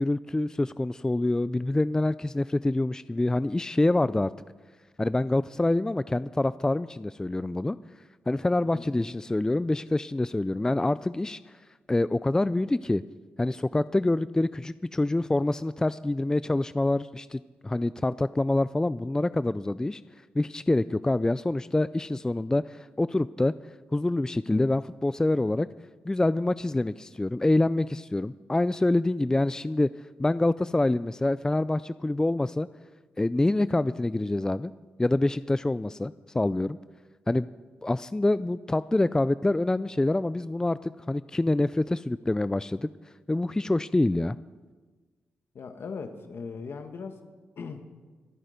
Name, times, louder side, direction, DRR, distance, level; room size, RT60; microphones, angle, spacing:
voice 1, 0.0-4.3 5.0-7.8 8.3-11.4 11.9-13.0 13.4-20.0 20.4-23.5 23.9-25.7 26.1-29.9 30.2-32.7 33.2-34.7 35.0-36.8 37.3-37.5 37.8-42.9 43.3-44.4, left 2 dB, 15° left, 16 dB, 0.4 m, -26 dB
voice 2, 45.5-47.2 47.6-47.8, left 5 dB, 65° left, 7 dB, 1.6 m, -39 dB
25.0 x 9.2 x 5.2 m, 1.3 s
cardioid pair, 65°, 4 cm